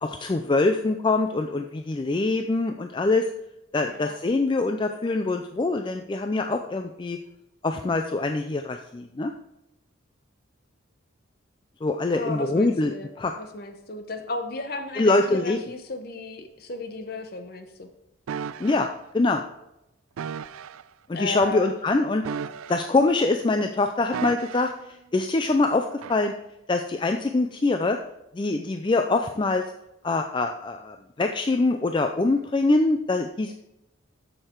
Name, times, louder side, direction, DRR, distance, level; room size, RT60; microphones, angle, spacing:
voice 1, 0.0-3.3 3.7-7.2 7.6-9.3 11.8-13.3 15.0-15.6 18.6-18.9 19.1-19.4 21.1-22.2 22.7-24.7 25.1-26.3 26.7-28.0 28.3-29.6 30.0-33.5, left 3 dB, 25° left, 6 dB, 0.3 m, -24 dB
voice 2, 3.8-4.2 12.1-17.9 21.1-21.8, left 2 dB, 45° left, 7 dB, 0.9 m, -35 dB
sound 1, 18.3-18.9 20.2-20.8 22.2-23.1 24.1-24.9 26.0-26.2, right 7 dB, 85° right, 0.3 m, -35 dB
7.7 x 6.6 x 4.5 m, 0.86 s
head